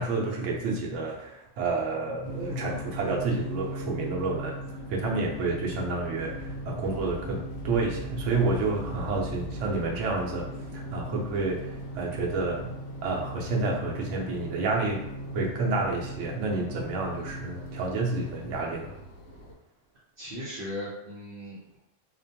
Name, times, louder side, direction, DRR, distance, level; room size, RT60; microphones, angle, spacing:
voice 1, 0.0-4.5 4.9-12.7 13.0-15.0 15.3-18.9, right 3 dB, 80° right, -1 dB, 0.9 m, -29 dB
sound 1, 2.2-19.5, equal, 80° left, 1.0 m, -38 dB
voice 2, 20.2-21.8, left 1 dB, 55° right, -7 dB, 0.8 m, -38 dB
2.4 x 2.2 x 2.7 m, 0.80 s
omnidirectional pair, 1.3 m